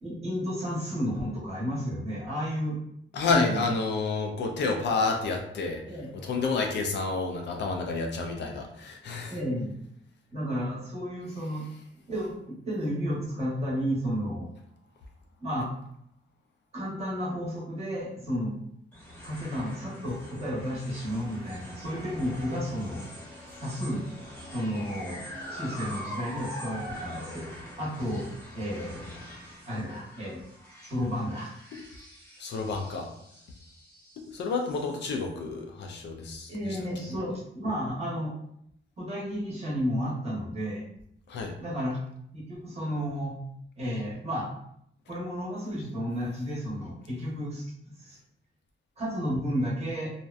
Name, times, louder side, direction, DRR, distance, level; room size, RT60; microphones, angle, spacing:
voice 1, 0.0-2.8 3.3-3.6 5.9-6.1 9.3-9.7 10.3-11.7 12.1-14.5 15.4-15.7 16.7-18.6 19.2-23.0 23.6-24.1 24.5-25.2 25.5-27.5 27.8-28.2 28.5-29.0 29.6-30.4 30.8-31.5 36.5-38.3 39.0-40.8 41.6-42.0 42.3-43.3 43.8-44.5 45.1-47.7 48.0-48.2 49.0-50.1, equal, 30° right, -6 dB, 0.8 m, -32 dB
voice 2, 3.1-9.4 23.5-23.6 32.4-33.1 34.3-36.8 41.3-41.6, left 3 dB, 60° left, 3 dB, 0.4 m, -30 dB
sound 1, 18.9-35.4, equal, 10° left, 0.9 m, -44 dB
2.6 x 2.1 x 2.3 m, 0.72 s
wide cardioid pair, 175°, 20 cm